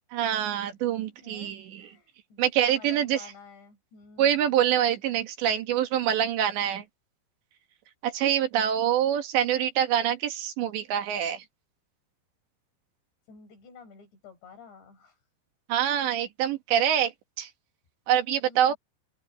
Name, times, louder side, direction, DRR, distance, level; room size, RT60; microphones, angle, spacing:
voice 1, 0.1-1.8 2.4-3.2 4.2-6.8 8.0-11.4 15.7-17.1 17.4-17.5 18.1-18.7, right 10 dB, 85° right, 4.3 m, -25 dB
voice 2, 1.1-4.7 13.3-15.2 18.5-18.8, left 5 dB, 80° left, 8.5 m, -51 dB
omnidirectional pair, 4.9 m